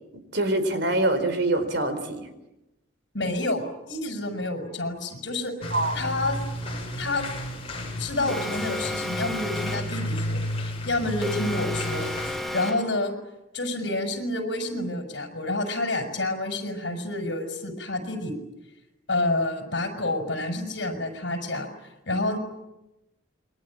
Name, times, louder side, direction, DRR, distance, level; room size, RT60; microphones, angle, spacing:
voice 1, 0.3-2.3 5.7-6.0, right 2 dB, 60° right, 9 dB, 4.5 m, -24 dB
voice 2, 3.1-5.5 5.9-6.4 6.9-7.3 8.0-13.1 13.5-18.3 19.1-22.4, left 2 dB, 60° left, 5 dB, 6.3 m, -29 dB
sound 1, 5.6-12.4, left 1 dB, 30° left, 7.3 m, -32 dB
Alarm, 8.3-10.0 11.2-13.0, left 1 dB, ahead, 2.1 m, -32 dB
28.0 x 23.0 x 8.8 m, 0.95 s
head